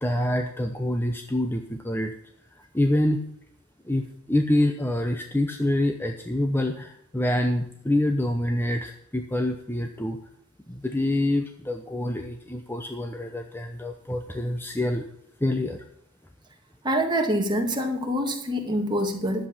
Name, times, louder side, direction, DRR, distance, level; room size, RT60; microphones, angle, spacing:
voice 1, 0.0-2.1 2.7-3.2 3.8-10.2 10.7-15.0 15.4-15.8, left 1 dB, 10° left, 4 dB, 0.8 m, -26 dB
voice 2, 16.8-19.5, equal, 20° right, 2 dB, 2.0 m, -25 dB
11.5 x 7.7 x 6.0 m, 0.72 s
head